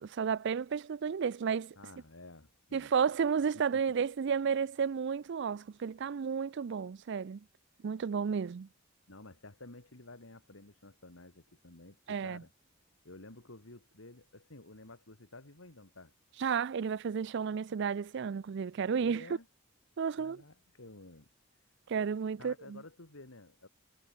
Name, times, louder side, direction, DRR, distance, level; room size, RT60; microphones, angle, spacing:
voice 1, 0.0-1.8 2.7-7.4 7.8-8.7 12.1-12.4 16.4-19.2 20.0-20.4 21.9-22.8, right 6 dB, 60° right, 0.4 m, -32 dB
voice 2, 1.8-2.9 3.7-3.8 9.1-12.5 13.0-16.1 19.0-19.5 20.2-21.3 22.4-23.7, left 2 dB, 85° left, 2.8 m, -52 dB
head